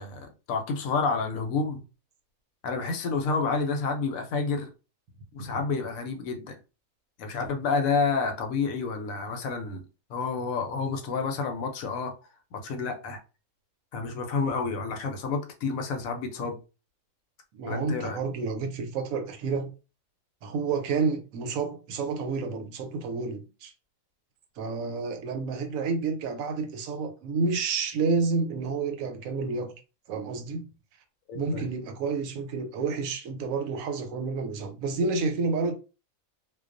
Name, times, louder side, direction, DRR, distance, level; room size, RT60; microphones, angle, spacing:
voice 1, 0.0-1.8 2.6-4.7 5.3-6.6 7.2-9.8 10.1-12.1 12.5-13.2 13.9-16.6 17.7-18.2 31.3-31.6, left 4 dB, 75° left, 1.0 m, -29 dB
voice 2, 17.5-19.7 20.4-23.7 24.6-29.7 30.1-30.6 31.3-35.7, right 4 dB, 75° right, 1.0 m, -30 dB
2.3 x 2.2 x 2.4 m
omnidirectional pair, 1.5 m